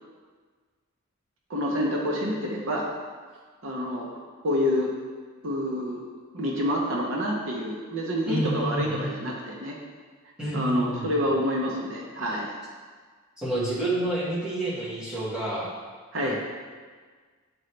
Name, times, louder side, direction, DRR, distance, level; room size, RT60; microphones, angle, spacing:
voice 1, 1.5-2.9 3.6-4.1 4.4-4.9 5.4-6.0 6.3-9.8 10.5-12.5 16.1-16.4, equal, 60° right, -1 dB, 0.8 m, -27 dB
voice 2, 8.3-9.1 10.4-11.3 13.4-15.7 16.2-16.4, right 1 dB, 5° right, -9 dB, 1.5 m, -29 dB
9.0 x 3.9 x 3.3 m, 1.5 s
head